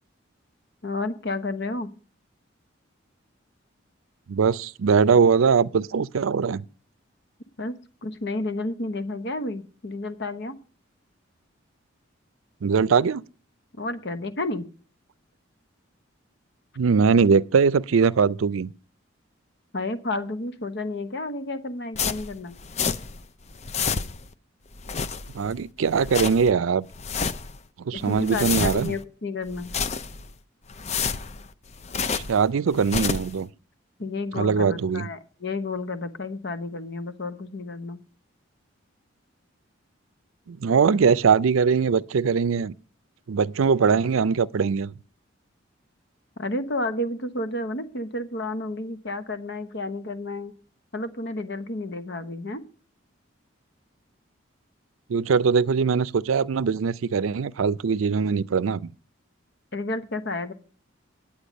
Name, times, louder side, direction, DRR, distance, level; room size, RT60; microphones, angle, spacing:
voice 1, 0.8-1.9 7.6-10.5 13.7-14.7 19.7-22.6 27.9-29.7 34.0-38.0 46.4-50.5 50.9-52.6 59.7-60.5, left 2 dB, 60° left, 1.0 m, -31 dB
voice 2, 4.3-6.7 12.6-13.2 16.8-18.7 25.3-26.9 27.9-28.9 32.1-33.5 34.4-35.1 40.5-42.7 43.3-44.9 55.1-58.9, right 5 dB, 90° right, 0.5 m, -21 dB
sound 1, 22.0-23.2 23.5-24.3 24.7-25.5 25.9-26.5 26.9-27.6 28.0-29.0 29.5-30.3 30.7-32.4 32.7-33.4, left 6 dB, 35° left, 0.5 m, -29 dB
10.0 x 8.7 x 5.2 m
head